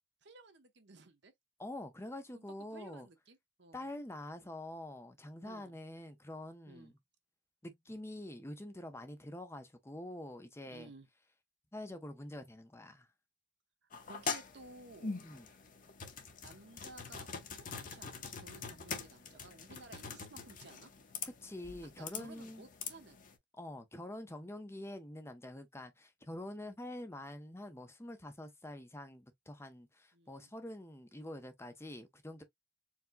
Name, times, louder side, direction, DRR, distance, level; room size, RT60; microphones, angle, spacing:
voice 1, 0.2-1.3 2.3-3.9 5.4-5.8 6.7-6.9 10.7-11.1 14.1-15.3 16.4-20.9 21.8-23.2 30.1-30.5, right 3 dB, 70° right, 1.1 m, -56 dB
voice 2, 1.6-3.1 3.7-6.9 7.6-10.9 11.7-13.1 15.2-15.5 21.2-22.7 23.6-32.4, left 1 dB, 15° left, 0.7 m, -46 dB
sound 1, 13.9-23.4, left 5 dB, 45° left, 0.9 m, -44 dB
4.6 x 2.2 x 3.8 m
head